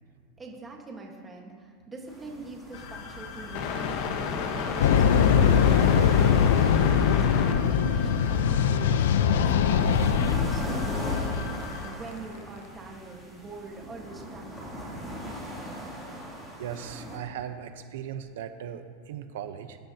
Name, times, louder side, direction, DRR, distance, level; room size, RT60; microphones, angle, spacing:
voice 1, 0.4-9.9 10.2-14.7, right 3 dB, 10° right, 0 dB, 1.5 m, -44 dB
sound 1, 2.1-17.2, equal, 10° left, 2.8 m, -39 dB
sound 2, 2.7-11.9, left 5 dB, 50° left, 1.2 m, -34 dB
sound 3, 4.8-11.5, left 7 dB, 90° left, 0.6 m, -22 dB
voice 2, 16.6-19.8, right 9 dB, 75° right, 8 dB, 0.9 m, -38 dB
19.0 x 13.5 x 2.9 m, 2.1 s
supercardioid pair, 175°, 0 cm